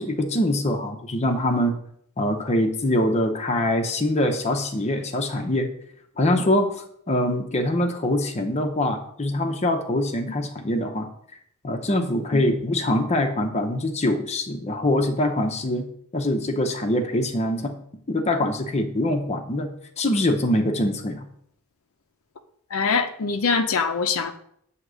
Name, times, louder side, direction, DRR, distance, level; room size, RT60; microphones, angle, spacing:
voice 1, 0.0-1.8 2.2-5.7 6.2-6.7 7.1-11.1 11.6-15.9 16.1-17.7 18.1-19.7 20.0-21.3, left 1 dB, 30° left, 5 dB, 0.7 m, -23 dB
voice 2, 22.7-24.3, left 5 dB, 90° left, 7 dB, 0.6 m, -23 dB
8.0 x 2.9 x 6.1 m, 0.69 s
head